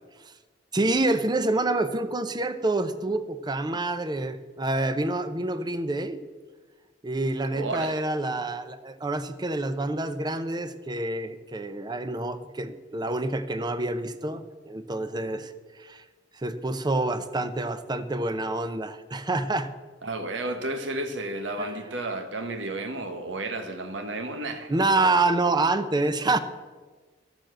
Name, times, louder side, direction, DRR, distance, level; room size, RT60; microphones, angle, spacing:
voice 1, 0.7-6.2 7.0-15.5 15.8-16.0 16.4-19.7 21.6-21.7 24.7-26.4, right 2 dB, 25° right, 11 dB, 0.7 m, -27 dB
voice 2, 7.5-7.9 20.0-25.2, right 2 dB, 85° right, 7 dB, 1.2 m, -32 dB
13.0 x 7.1 x 7.6 m, 1.4 s
head